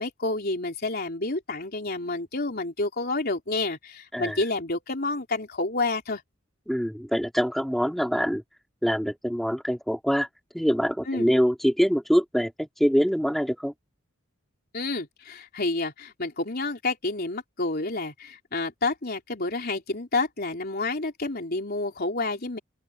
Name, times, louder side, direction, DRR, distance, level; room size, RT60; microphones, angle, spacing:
voice 1, 0.0-6.2 11.1-11.3 14.7-22.6, left 2 dB, 50° left, 3.8 m, -29 dB
voice 2, 6.7-8.4 8.8-10.3 10.5-13.7, equal, ahead, 3.4 m, -24 dB
open air
head